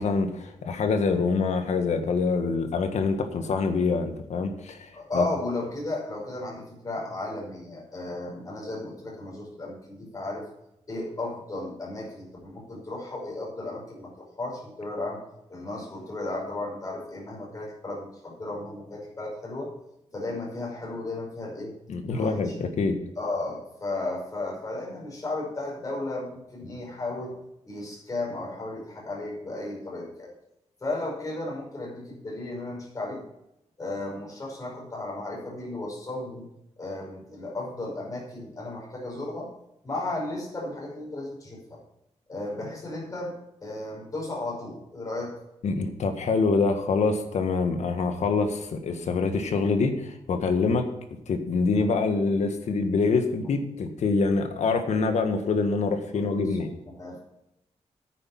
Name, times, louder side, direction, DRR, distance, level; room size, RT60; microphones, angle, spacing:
voice 1, 0.0-5.3 21.9-23.0 45.6-50.9 51.3-56.7, left 4 dB, 80° left, 7 dB, 1.6 m, -25 dB
voice 2, 4.9-10.5 10.9-15.2 15.5-19.7 20.1-21.7 22.1-22.6 23.2-27.3 27.6-30.3 30.8-33.2 33.8-36.5 36.8-39.5 39.8-41.8 42.3-43.4 43.6-45.3 56.1-56.6 56.9-57.2, left 2 dB, 30° left, -3 dB, 5.6 m, -34 dB
9.5 x 9.4 x 5.9 m, 0.85 s
wide cardioid pair, 145°, 12 cm